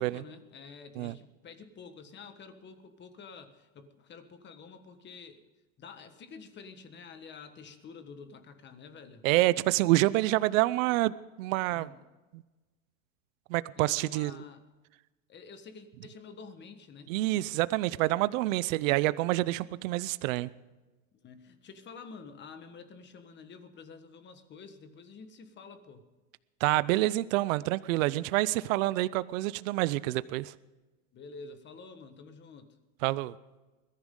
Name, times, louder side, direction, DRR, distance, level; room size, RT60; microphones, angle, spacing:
voice 1, 0.0-5.4 5.8-9.3 11.7-12.0 13.7-14.6 15.3-17.1 21.1-26.1 31.1-32.8, left 5 dB, 25° left, 9 dB, 1.4 m, -49 dB
voice 2, 9.2-11.9 12.3-12.4 13.5-14.4 17.1-20.5 26.6-30.5 33.0-33.3, right 18 dB, 75° right, 17 dB, 0.6 m, -27 dB
21.5 x 14.0 x 3.8 m, 1.2 s
supercardioid pair, 140°, 40 cm